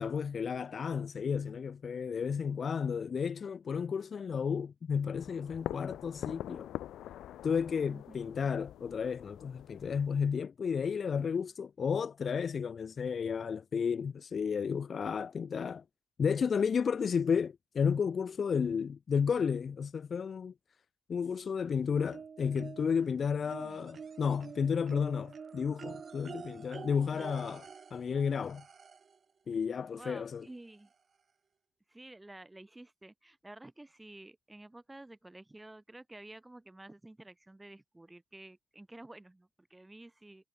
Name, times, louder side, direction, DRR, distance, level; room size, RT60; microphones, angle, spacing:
voice 1, 0.0-6.7 7.4-15.8 16.2-20.5 21.1-28.6 29.5-30.5, left 6 dB, 45° left, 0.7 m, -32 dB
sound 1, 5.1-10.1, left 12 dB, 80° left, 1.0 m, -44 dB
voice 2, 7.9-8.2 23.4-23.8 27.1-27.3 29.9-30.9 31.9-40.5, right 2 dB, 10° right, 8.0 m, -51 dB
sound 2, 22.1-23.1 23.5-29.2 30.4-30.5 30.9-31.0, right 6 dB, 45° right, 2.2 m, -47 dB
cardioid pair, 90°, 0 cm